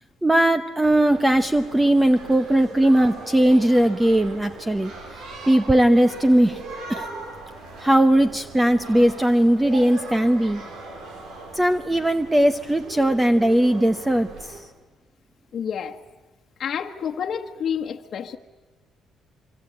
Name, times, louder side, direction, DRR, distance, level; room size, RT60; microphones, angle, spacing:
voice 1, 0.2-4.9 5.5-6.6 6.9-7.1 7.8-10.6 11.5-14.6, right 1 dB, 10° right, 10 dB, 0.9 m, -19 dB
sound 1, 0.8-14.6, right 2 dB, 80° right, 5.8 m, -39 dB
voice 2, 15.5-16.0 16.6-18.4, left 8 dB, 50° left, 2 dB, 1.3 m, -29 dB
25.5 x 24.5 x 8.8 m, 1.2 s
cardioid pair, 120°, 0 cm